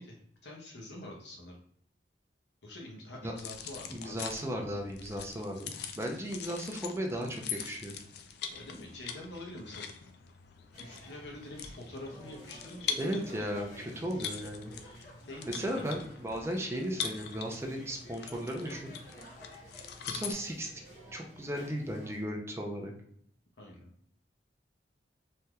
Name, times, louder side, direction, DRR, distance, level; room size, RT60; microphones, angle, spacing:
voice 1, 0.0-1.6 2.6-4.2 6.1-6.2 8.5-9.9 10.8-13.3 14.0-14.3 14.8-16.0 23.6-23.9, left 1 dB, 90° left, -1 dB, 0.9 m, -46 dB
sound 1, 3.4-20.3, left 7 dB, 65° left, 0.3 m, -43 dB
voice 2, 3.9-8.0 13.0-14.8 15.5-18.9 20.1-20.7 21.1-22.9, equal, 15° right, 1 dB, 0.5 m, -36 dB
sound 2, 10.7-22.2, equal, 50° left, 1.2 m, -52 dB
3.3 x 2.7 x 2.3 m, 0.64 s
head